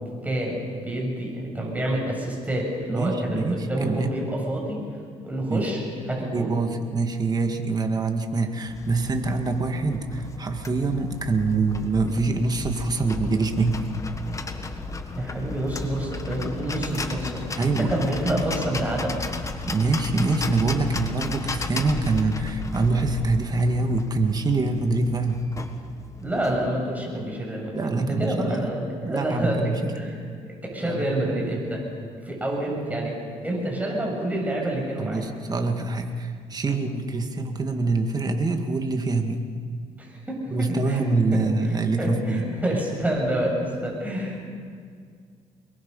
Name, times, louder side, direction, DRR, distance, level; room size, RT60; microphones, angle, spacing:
voice 1, 0.2-4.8 5.2-5.8 6.1-6.5 15.1-19.2 26.2-30.2 30.6-31.9 32.2-33.2 33.4-35.3 36.7-36.8 40.0-44.5, right 1 dB, 10° right, -2 dB, 7.6 m, -28 dB
voice 2, 2.9-4.1 5.5-5.7 6.3-13.8 17.6-17.9 19.7-25.4 27.7-28.7 29.0-29.9 30.8-31.0 35.0-39.4 40.5-42.4, right 3 dB, 30° right, 5 dB, 2.2 m, -25 dB
sound 1, 8.7-26.7, left 3 dB, 25° left, 1.6 m, -34 dB
24.0 x 22.0 x 5.6 m, 2.1 s
cardioid pair, 95°, 13 cm